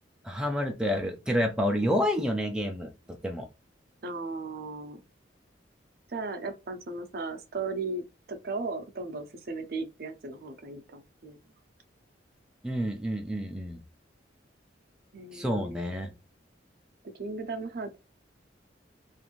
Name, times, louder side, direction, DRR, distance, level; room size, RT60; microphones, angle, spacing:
voice 1, 0.2-3.5 12.6-13.8 15.3-16.1, equal, 5° right, 0.4 m, -29 dB
voice 2, 4.0-5.1 6.1-11.4 15.1-15.9 17.1-18.0, right 3 dB, 55° right, 0.5 m, -36 dB
2.5 x 2.5 x 2.9 m
head